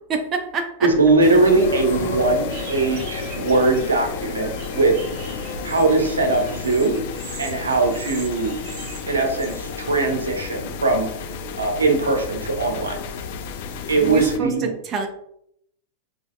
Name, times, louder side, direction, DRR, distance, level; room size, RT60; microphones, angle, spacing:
voice 1, 0.1-1.0 14.0-15.1, right 5 dB, 30° right, 5 dB, 0.4 m, -27 dB
voice 2, 0.8-5.0 5.6-7.0 7.4-8.6 9.1-11.1 11.6-13.0 13.9-14.7, right 3 dB, 75° right, 4 dB, 0.6 m, -20 dB
sound 1, 0.9-6.6, left 2 dB, 65° left, 0.8 m, -37 dB
sound 2, 1.2-14.4, left 5 dB, 50° left, 0.3 m, -32 dB
sound 3, 2.5-10.1, right 4 dB, 45° right, 1.0 m, -40 dB
3.9 x 3.0 x 2.4 m, 0.73 s
figure-of-eight pair, 90°, 0 cm